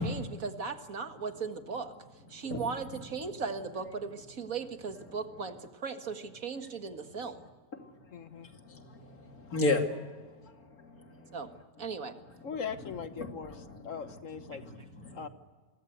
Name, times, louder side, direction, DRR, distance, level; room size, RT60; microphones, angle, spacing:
voice 1, 0.0-1.9 2.3-7.4 11.3-11.5 11.8-12.2, right 5 dB, 70° right, 7 dB, 2.2 m, -37 dB
voice 2, 2.3-2.7 7.8-11.6 11.9-12.0 12.4-12.5 13.2-14.1 14.5-15.3, left 2 dB, 85° left, 4 dB, 3.2 m, -36 dB
voice 3, 8.1-8.5 12.4-13.5 13.8-14.6 15.1-15.3, left 6 dB, 60° left, 10 dB, 1.7 m, -39 dB
29.0 x 23.5 x 8.1 m, 1.4 s
omnidirectional pair, 1.5 m